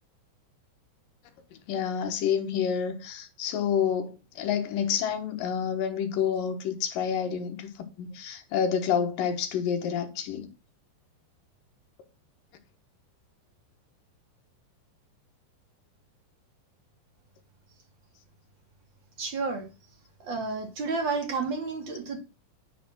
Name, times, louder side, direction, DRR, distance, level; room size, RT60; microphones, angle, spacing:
voice 1, 1.7-10.5, left 8 dB, 65° left, 2.5 m, -29 dB
voice 2, 19.2-19.6 20.2-22.2, right 4 dB, 35° right, 2.2 m, -31 dB
10.5 x 5.1 x 6.1 m
omnidirectional pair, 4.9 m